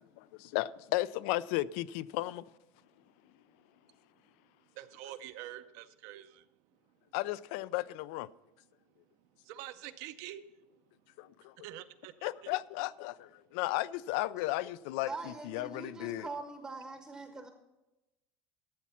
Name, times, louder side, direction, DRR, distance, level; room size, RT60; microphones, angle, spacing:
voice 1, 0.0-2.4 7.1-8.3 11.2-11.5 12.2-16.3, left 17 dB, 70° left, 0.3 m, -35 dB
voice 2, 4.8-6.4 9.5-10.4 11.6-12.5, right 13 dB, 55° right, 0.6 m, -46 dB
voice 3, 15.1-17.5, right 3 dB, 10° right, 0.8 m, -43 dB
12.5 x 7.3 x 5.7 m
cardioid pair, 170°, 6 cm